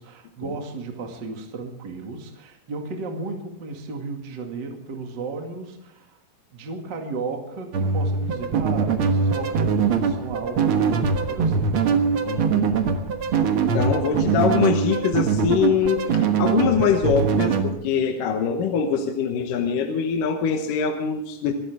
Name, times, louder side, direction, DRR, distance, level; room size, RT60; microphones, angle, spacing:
voice 1, 0.0-6.2 6.5-11.9, right 3 dB, 35° right, 3 dB, 2.3 m, -34 dB
sound 1, 7.7-17.7, right 5 dB, 55° right, 1.5 m, -22 dB
voice 2, 12.3-12.8 13.3-13.4 13.7-21.5, left 6 dB, 70° left, 4 dB, 2.7 m, -23 dB
25.5 x 13.5 x 3.6 m, 0.79 s
omnidirectional pair, 4.0 m